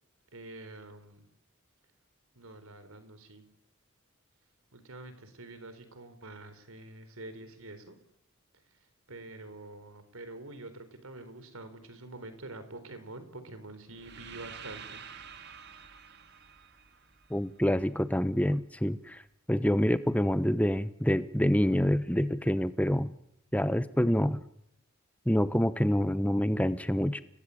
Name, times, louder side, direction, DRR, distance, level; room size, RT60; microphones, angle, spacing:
voice 1, 0.3-1.2 2.3-3.4 4.7-8.0 8.7-15.0, right 2 dB, 80° right, 11 dB, 4.2 m, -46 dB
sound 1, 13.9-18.0, right 6 dB, 50° right, 2.0 m, -49 dB
voice 2, 17.3-19.2 19.5-23.1 23.5-24.4 25.3-27.2, equal, 5° left, 13 dB, 0.9 m, -27 dB
29.5 x 18.5 x 8.6 m, 0.78 s
head